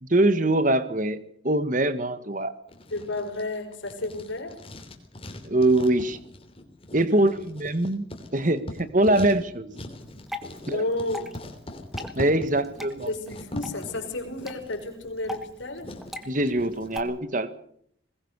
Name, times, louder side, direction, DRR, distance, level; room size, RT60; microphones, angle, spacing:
voice 1, 0.0-2.5 5.4-6.2 6.9-9.7 10.7-10.8 12.1-13.1 16.3-17.5, right 1 dB, 40° right, 13 dB, 1.5 m, -23 dB
Writing, 2.7-17.0, left 1 dB, 30° left, 3.2 m, -42 dB
voice 2, 2.9-4.6 7.1-7.3 10.6-11.3 13.0-15.9, left 2 dB, 80° left, 3 dB, 5.5 m, -32 dB
Water / Drip, 10.0-17.0, left 2 dB, ahead, 1.6 m, -41 dB
21.5 x 20.0 x 6.7 m, 0.65 s
head